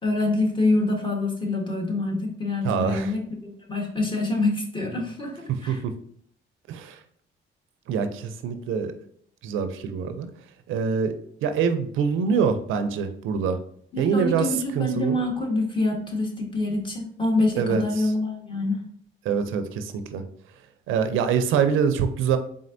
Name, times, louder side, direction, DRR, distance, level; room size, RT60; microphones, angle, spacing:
voice 1, 0.0-5.8 13.9-18.8, left 2 dB, 25° left, 0 dB, 1.3 m, -26 dB
voice 2, 2.6-3.1 5.5-5.9 6.7-7.0 7.9-8.9 9.4-10.3 10.7-11.1 11.4-13.6 14.0-15.2 17.6-18.1 19.2-20.2 20.9-22.4, right 6 dB, 85° right, 9 dB, 0.5 m, -25 dB
4.3 x 3.7 x 2.6 m, 0.63 s
cardioid pair, 90°, 20 cm